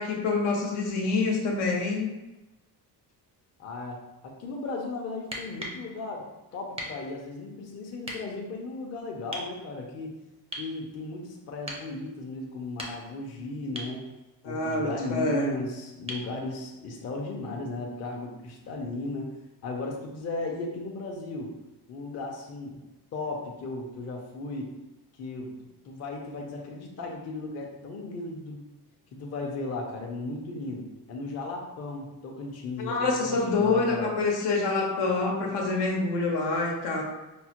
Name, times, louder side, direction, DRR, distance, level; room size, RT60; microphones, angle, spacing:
voice 1, 0.0-2.1 14.4-15.5 32.8-37.0, left 3 dB, 90° left, -1 dB, 1.0 m, -26 dB
voice 2, 3.6-10.1 10.6-14.0 14.4-21.5 21.9-22.8 23.1-24.7 25.2-28.6 29.1-34.1, left 2 dB, 40° left, -1 dB, 0.6 m, -36 dB
sound 1, 5.2-5.8 6.8-7.0 8.0-8.2 9.3-9.5 10.5-10.7 11.7-11.9 12.6-13.2 13.7-14.0 16.1-16.3 18.2-18.3, right 1 dB, 15° right, 0.4 m, -38 dB
5.2 x 2.1 x 2.9 m, 1.0 s
cardioid pair, 155°, 41 cm